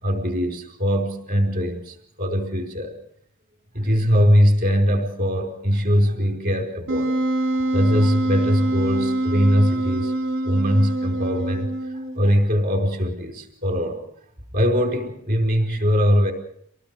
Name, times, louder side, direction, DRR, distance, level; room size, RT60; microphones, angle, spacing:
voice 1, 0.0-2.9 3.7-10.1 10.4-14.0 14.5-16.3, equal, 45° right, 3 dB, 4.9 m, -21 dB
Wind instrument woodwind instrument, 6.9-12.3, right 2 dB, 70° right, 2.5 m, -24 dB
26.0 x 18.5 x 6.7 m, 0.70 s
head